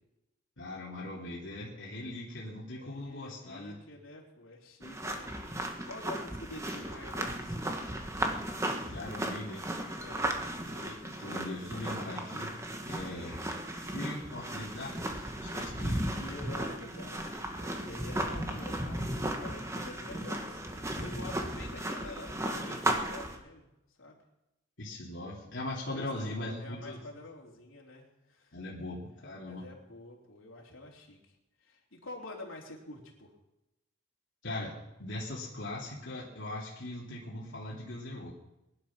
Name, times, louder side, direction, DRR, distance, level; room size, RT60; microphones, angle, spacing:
voice 1, 0.6-3.8 8.9-9.6 10.6-12.6 12.9-13.4 13.7-16.1 24.8-27.0 28.5-29.7 34.4-38.3, left 1 dB, 65° left, -6 dB, 2.9 m, -40 dB
voice 2, 2.8-7.7 10.0-10.3 16.2-23.7 24.0-24.2 25.9-28.6 29.5-31.3 31.6-33.3, left 2 dB, 80° left, -1 dB, 3.6 m, -48 dB
sound 1, 4.8-23.4, right 1 dB, 15° right, 1.5 m, -35 dB
21.0 x 11.0 x 6.0 m, 0.93 s
head